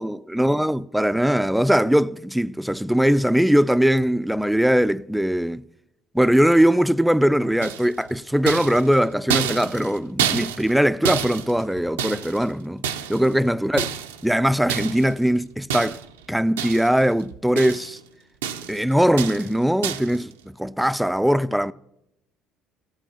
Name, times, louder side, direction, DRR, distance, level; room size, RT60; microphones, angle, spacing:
voice 1, 0.0-5.6 6.1-12.8 13.1-13.9 14.2-16.0 16.3-18.0 18.7-21.7, equal, 5° right, 0.4 m, -20 dB
sound 1, 7.6-8.1 8.5-10.8 11.0-12.5 12.8-13.4 13.8-14.3 14.7-15.1 15.7-16.2 16.6-17.1 17.3-18.0 18.4-18.8 19.2-19.5 19.8-20.2, right 8 dB, 85° right, 0.6 m, -28 dB
15.0 x 8.9 x 5.8 m
hypercardioid pair, 60°, 0 cm